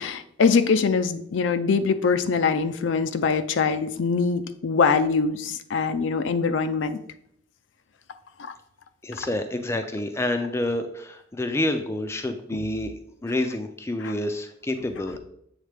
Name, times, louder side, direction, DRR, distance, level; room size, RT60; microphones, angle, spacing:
voice 1, 0.0-7.0 8.4-8.5 14.0-14.1, left 5 dB, 70° left, 10 dB, 0.4 m, -23 dB
voice 2, 9.0-12.9 13.2-15.2, left 1 dB, 15° left, 6 dB, 0.4 m, -28 dB
8.0 x 3.6 x 3.4 m, 0.70 s
head